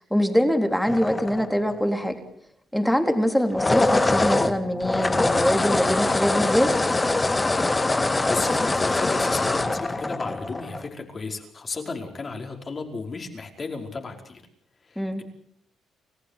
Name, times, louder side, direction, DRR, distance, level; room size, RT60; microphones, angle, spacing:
voice 1, 0.1-2.2 2.7-6.7 15.0-15.2, equal, 5° left, 6 dB, 3.6 m, -23 dB
sound 1, 0.9-1.9 3.4-10.9, left 2 dB, 20° left, 2.1 m, -23 dB
voice 2, 8.2-14.4 14.9-15.2, left 4 dB, 35° left, 3 dB, 5.1 m, -34 dB
29.0 x 15.0 x 8.4 m, 0.68 s
cardioid pair, 90°, 0 cm